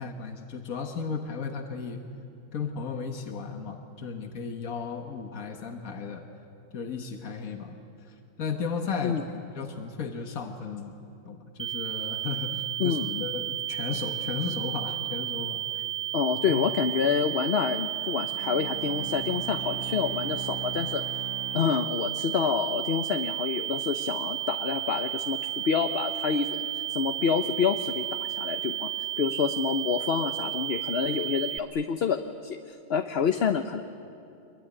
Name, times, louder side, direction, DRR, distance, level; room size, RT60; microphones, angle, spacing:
voice 1, 0.0-2.0 2.5-6.3 6.7-7.8 8.4-9.2 9.6-11.0 11.3-15.8 16.5-16.6, left 5 dB, 80° left, 4 dB, 1.9 m, -35 dB
sound 1, 11.6-31.6, right 13 dB, 40° right, 0.5 m, -33 dB
voice 2, 12.8-13.3 16.1-21.0 21.5-28.9 29.2-33.8, left 6 dB, 50° left, 8 dB, 1.0 m, -28 dB
Bowed string instrument, 18.3-22.7, right 1 dB, 75° right, 1.3 m, -41 dB
25.0 x 22.0 x 9.9 m, 2.6 s
omnidirectional pair, 1.5 m